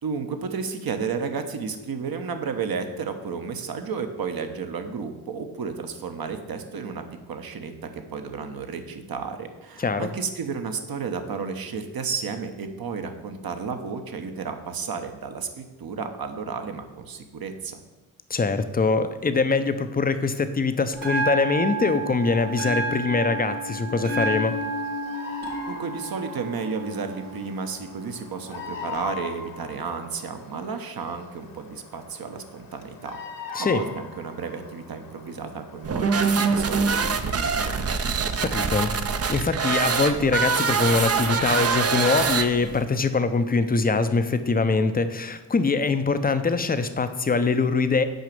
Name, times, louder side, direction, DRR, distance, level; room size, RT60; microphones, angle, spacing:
voice 1, 0.0-17.8 25.7-33.2 33.6-37.8, right 5 dB, 50° right, 6 dB, 1.2 m, -32 dB
voice 2, 9.8-10.1 18.3-24.6 33.5-33.8 38.4-39.0 39.3-48.0, left 4 dB, 20° left, 10 dB, 0.7 m, -23 dB
Bell, 20.9-28.9, right 2 dB, 80° right, 1.7 m, -31 dB
Bird vocalization bird call bird song, 24.2-36.0, left 6 dB, 45° left, 1.3 m, -41 dB
sound 1, 35.8-42.8, right 5 dB, 30° right, 0.8 m, -24 dB
6.5 x 4.9 x 6.9 m, 1.1 s
hypercardioid pair, 45°, 47 cm